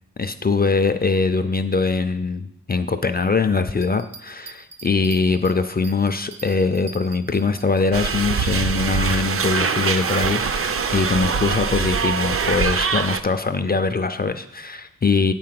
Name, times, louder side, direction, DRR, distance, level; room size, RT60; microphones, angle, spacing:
voice 1, 0.2-15.3, left 4 dB, 30° left, 9 dB, 0.4 m, -22 dB
sound 1, 3.7-8.1, right 4 dB, 70° right, 0.8 m, -43 dB
sound 2, 7.9-13.2, right 5 dB, 40° right, 0.5 m, -23 dB
9.0 x 4.8 x 7.6 m, 0.75 s
wide cardioid pair, 170°, 34 cm